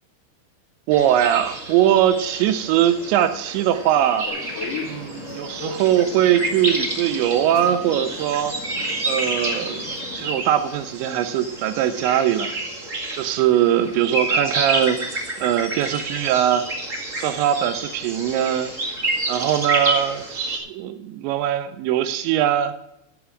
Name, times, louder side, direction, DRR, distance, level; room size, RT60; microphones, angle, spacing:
sound 1, 0.9-20.6, right 2 dB, 45° right, 0.9 m, -29 dB
voice 1, 0.9-4.3 4.8-8.5 9.1-9.9 10.1-12.6 13.1-16.7 17.2-18.7 19.3-22.7, right 11 dB, 80° right, 11 dB, 2.8 m, -21 dB
sound 2, 4.3-10.4, left 5 dB, 60° left, 2.3 m, -37 dB
14.0 x 7.5 x 6.0 m, 0.83 s
omnidirectional pair, 5.4 m